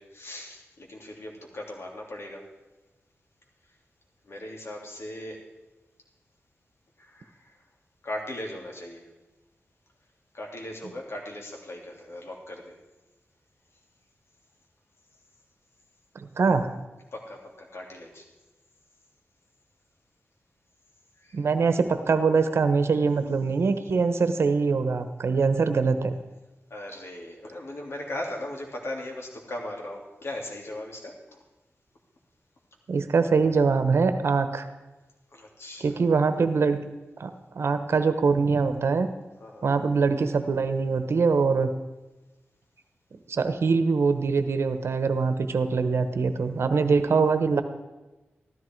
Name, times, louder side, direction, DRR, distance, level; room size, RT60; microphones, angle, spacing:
voice 1, 0.0-2.5 4.3-5.4 7.0-7.6 8.0-9.1 10.3-12.8 17.1-18.2 21.2-21.4 26.7-31.2 35.3-36.1 39.4-39.7, left 1 dB, 70° left, 0 dB, 3.1 m, -38 dB
voice 2, 16.1-16.7 21.3-26.1 32.9-34.7 35.8-36.8 37.2-39.1 39.6-41.7 43.3-47.6, right 4 dB, 70° right, 10 dB, 1.1 m, -23 dB
14.5 x 13.5 x 4.6 m, 1.1 s
wide cardioid pair, 75°, 4 cm